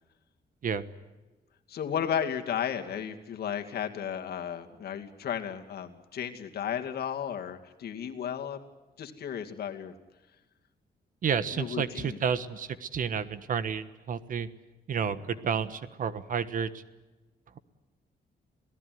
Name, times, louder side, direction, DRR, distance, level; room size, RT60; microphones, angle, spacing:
voice 1, 1.7-8.6 9.0-9.9 11.5-12.2, left 8 dB, 70° left, 5 dB, 2.4 m, -34 dB
voice 2, 11.2-14.5 14.9-16.8, right 7 dB, 55° right, 14 dB, 1.3 m, -31 dB
27.5 x 18.0 x 9.4 m, 1.2 s
wide cardioid pair, 165°, 17 cm